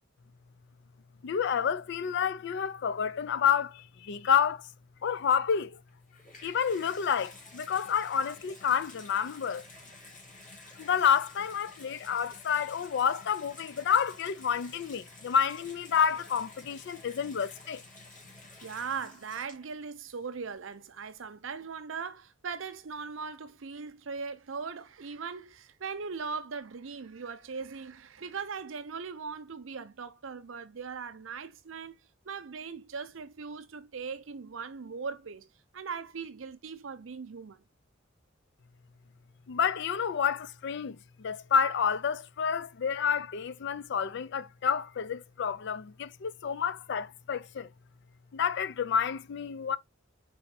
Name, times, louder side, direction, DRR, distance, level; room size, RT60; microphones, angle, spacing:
voice 1, 1.2-4.7 5.0-5.8 6.4-9.6 10.8-17.8 39.5-47.7 48.3-49.8, left 7 dB, 60° left, 0.4 m, -29 dB
Water tap faucet / Bathtub (filling or washing), 5.9-19.9 20.7-20.8, left 2 dB, 45° left, 2.2 m, -52 dB
voice 2, 18.6-31.9 32.2-35.5 35.7-37.6, right 5 dB, 75° right, 0.6 m, -39 dB
4.2 x 4.1 x 2.8 m
head